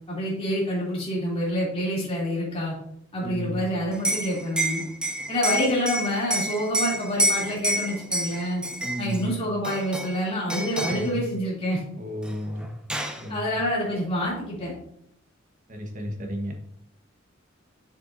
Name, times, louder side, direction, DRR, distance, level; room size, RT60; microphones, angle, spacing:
voice 1, 0.1-2.7 3.1-4.8 5.3-8.6 9.0-11.8 13.3-14.7, equal, 30° left, -5 dB, 2.9 m, -27 dB
voice 2, 3.2-3.6 8.8-9.3 10.9-11.2 12.0-12.7 13.1-13.6 15.7-16.5, equal, 40° right, 2 dB, 1.4 m, -33 dB
Liquid, 3.9-9.2 9.6-10.2 10.5-11.1 12.2-12.3 12.6-13.2, right 1 dB, 5° right, 0.6 m, -28 dB
7.1 x 6.9 x 2.7 m, 0.71 s
head